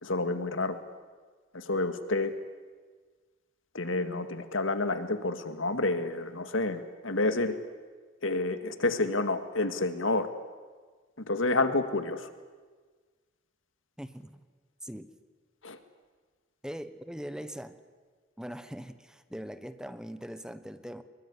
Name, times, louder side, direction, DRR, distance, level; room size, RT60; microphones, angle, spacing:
voice 1, 0.0-0.8 1.5-2.3 3.7-7.6 8.2-10.3 11.3-12.3 15.6-15.8, left 2 dB, 85° left, 9 dB, 2.1 m, -29 dB
voice 2, 14.0-14.4 14.8-15.1 16.6-17.8 18.4-21.0, equal, 5° right, 12 dB, 1.1 m, -41 dB
25.0 x 22.5 x 9.9 m, 1.5 s
head